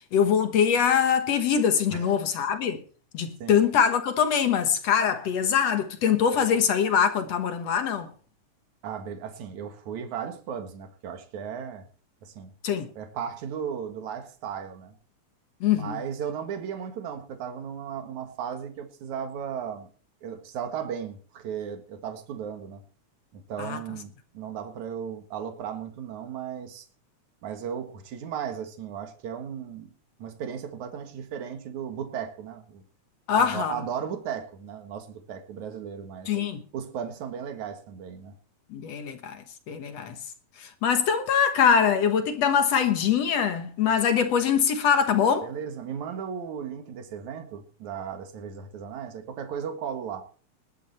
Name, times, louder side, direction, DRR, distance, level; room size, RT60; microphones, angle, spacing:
voice 1, 0.1-2.8 3.1-8.1 12.6-12.9 15.6-16.0 23.6-23.8 33.3-33.8 36.3-36.6 38.7-39.4 39.7-40.2 40.6-45.5, left 7 dB, 65° left, 2.3 m, -23 dB
voice 2, 8.8-11.9 12.2-12.5 13.0-14.9 15.7-19.9 20.2-22.8 23.3-26.9 27.4-29.9 30.2-32.8 33.4-36.4 36.7-38.4 45.4-50.2, right 8 dB, 75° right, 3.1 m, -36 dB
20.0 x 10.0 x 4.3 m
omnidirectional pair, 3.4 m